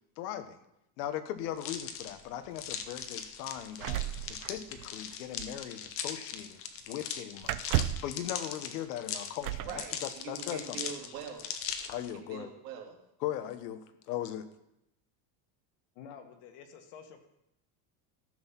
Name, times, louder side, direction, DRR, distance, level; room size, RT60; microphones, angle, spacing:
voice 1, 0.2-0.6 1.0-6.6 6.9-7.6 8.0-10.8 11.9-12.5 13.2-14.5, left 11 dB, 85° left, 10 dB, 1.2 m, -39 dB
sound 1, 1.6-12.1, left 8 dB, 30° left, 0.7 m, -40 dB
sound 2, 3.8-5.1 5.4-5.6 7.4-8.2 9.4-9.8 10.9-11.0 11.4-11.9, right 14 dB, 65° right, 0.7 m, -33 dB
voice 2, 9.6-11.5 12.1-12.9, right 7 dB, 85° right, 1 dB, 2.7 m, -43 dB
voice 3, 15.9-17.3, left 7 dB, 55° left, 6 dB, 1.7 m, -50 dB
14.0 x 6.4 x 5.8 m, 0.84 s
cardioid pair, 170°, 47 cm